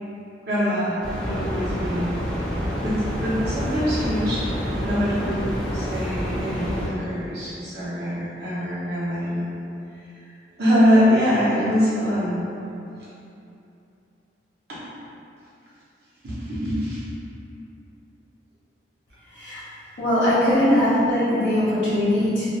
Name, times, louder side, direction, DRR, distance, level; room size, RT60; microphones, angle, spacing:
voice 1, 0.5-2.2 2.8-5.4 5.7-9.5 10.6-12.5 16.2-17.0 20.4-20.7, equal, 65° right, -10 dB, 0.8 m, -23 dB
sound 1, 1.0-6.9, equal, 5° left, 0.4 m, -28 dB
voice 2, 20.0-22.5, left 1 dB, 70° left, -12 dB, 0.6 m, -20 dB
2.5 x 2.1 x 2.6 m, 2.7 s
head